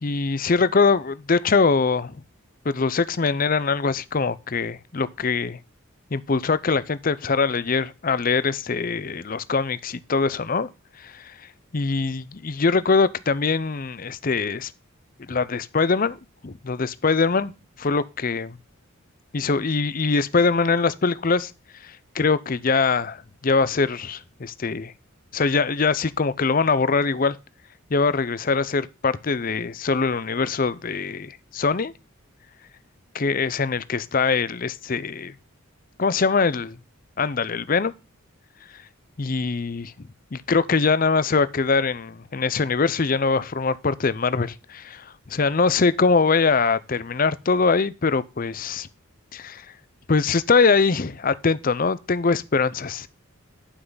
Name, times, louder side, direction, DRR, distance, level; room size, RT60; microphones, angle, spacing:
voice 1, 0.0-2.1 2.6-5.6 6.1-10.7 11.0-11.3 11.7-14.7 15.3-16.2 16.4-17.5 17.8-18.6 19.3-21.5 21.8-24.9 25.3-27.4 27.9-31.9 33.1-35.3 36.0-36.7 37.2-37.9 39.2-39.9 40.3-48.9 49.3-49.7 50.1-53.1, left 4 dB, 40° left, 0.6 m, -22 dB
11.0 x 5.9 x 3.9 m
head